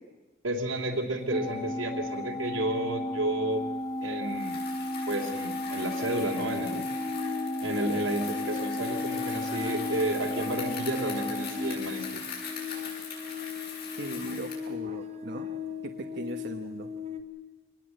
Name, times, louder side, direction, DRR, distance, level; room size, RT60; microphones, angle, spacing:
voice 1, 0.4-3.6 4.0-4.6 5.0-6.8 7.6-12.2, right 1 dB, 80° right, -4 dB, 2.8 m, -31 dB
Organ, 1.3-12.5, left 1 dB, 15° left, 1.0 m, -34 dB
sound 1, 3.6-3.7 4.0-17.2, left 8 dB, 35° right, 1.8 m, -39 dB
Bicycle, 4.2-14.7, left 6 dB, 50° left, 7.9 m, -42 dB
voice 2, 14.0-15.5 15.8-16.9, right 2 dB, 55° right, 2 dB, 1.3 m, -38 dB
25.5 x 20.0 x 7.9 m, 1.2 s
head